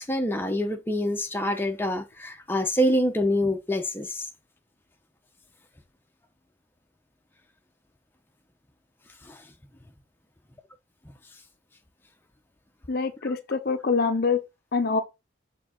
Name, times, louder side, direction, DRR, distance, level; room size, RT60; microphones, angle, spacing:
voice 1, 0.0-4.3 9.3-9.4, equal, 10° left, 0.7 m, -26 dB
voice 2, 12.9-14.4 14.7-15.0, left 4 dB, 50° left, 0.6 m, -25 dB
6.8 x 3.7 x 3.8 m
head